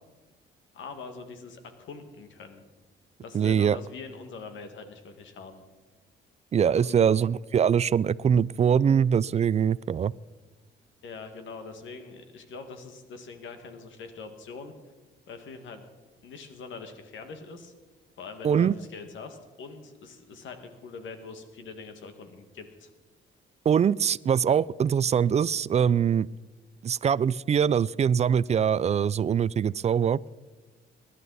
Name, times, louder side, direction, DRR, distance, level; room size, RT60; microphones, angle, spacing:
voice 1, 0.7-2.6 3.2-5.6 6.7-7.0 11.0-14.7 15.3-15.8 16.2-17.7 18.2-22.9, left 4 dB, 75° left, 7 dB, 2.0 m, -43 dB
voice 2, 3.3-3.8 6.5-10.1 18.4-18.7 23.7-26.3 26.8-30.2, right 8 dB, 35° right, 22 dB, 0.3 m, -23 dB
22.5 x 11.0 x 4.1 m, 1.2 s
cardioid pair, 90°, 20 cm